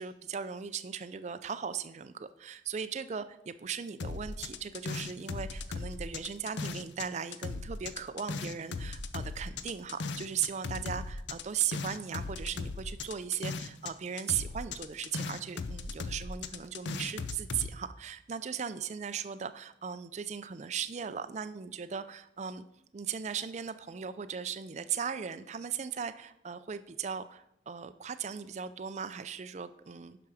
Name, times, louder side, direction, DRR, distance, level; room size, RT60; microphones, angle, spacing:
voice 1, 0.0-22.6 22.9-30.2, right 7 dB, 40° right, 11 dB, 0.4 m, -37 dB
sound 1, 4.0-7.1 7.3-13.9 14.2-17.7, left 4 dB, 75° left, 0.6 m, -37 dB
10.5 x 5.8 x 4.9 m, 0.77 s
head